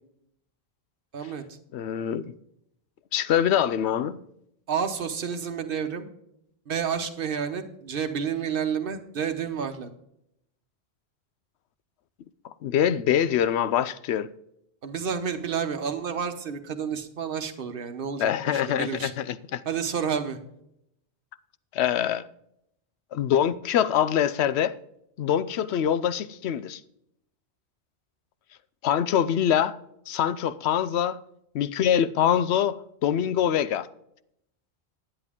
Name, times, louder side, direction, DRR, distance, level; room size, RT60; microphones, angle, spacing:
voice 1, 1.1-1.4 4.7-6.1 6.7-9.9 14.8-19.1 19.6-20.4, right 7 dB, 60° right, 1.2 m, -30 dB
voice 2, 1.7-2.3 3.1-4.2 12.4-14.3 18.2-19.6 21.7-22.2 23.1-24.8 25.2-26.8 28.8-29.8 30.1-31.2 31.5-33.9, left 9 dB, 80° left, 0.9 m, -24 dB
10.5 x 9.9 x 3.6 m
omnidirectional pair, 1.1 m